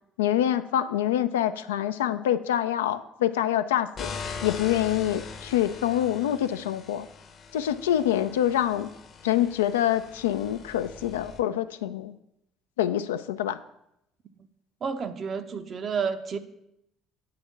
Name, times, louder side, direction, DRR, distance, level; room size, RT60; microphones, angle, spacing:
voice 1, 0.2-4.1 4.4-7.1 7.5-8.9 9.2-12.1 12.8-13.6, left 11 dB, 80° left, 11 dB, 0.3 m, -26 dB
sound 1, 4.0-11.4, left 5 dB, 45° left, 0.8 m, -41 dB
voice 2, 14.8-16.4, right 6 dB, 45° right, 9 dB, 0.7 m, -30 dB
8.6 x 3.5 x 6.1 m, 0.81 s
figure-of-eight pair, 55°, 0 cm